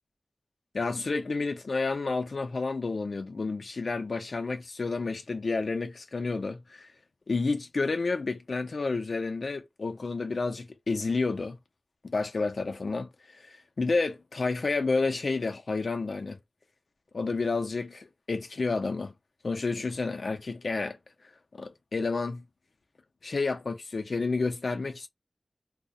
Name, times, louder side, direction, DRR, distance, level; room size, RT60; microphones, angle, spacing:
voice 1, 0.7-6.9 7.3-11.6 12.0-13.1 13.4-16.4 17.1-19.1 19.4-21.0 21.5-22.4 23.2-25.1, left 3 dB, 80° left, 0.5 m, -30 dB
2.3 x 2.1 x 2.6 m
wide cardioid pair, 55°, 0 cm